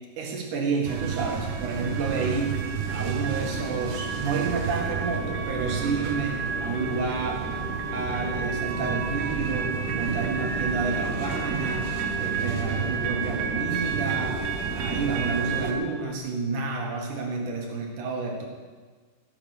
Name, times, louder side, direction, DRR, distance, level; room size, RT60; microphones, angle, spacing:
voice 1, 0.2-2.6 2.9-7.4 7.9-11.9 12.2-14.4 14.8-18.5, right 4 dB, 55° right, 0 dB, 3.2 m, -30 dB
sound 1, 0.9-15.7, right 7 dB, 85° right, 3.4 m, -30 dB
sound 2, 1.0-16.2, left 7 dB, 80° left, 2.7 m, -40 dB
16.0 x 7.8 x 6.7 m, 1.4 s
omnidirectional pair, 4.6 m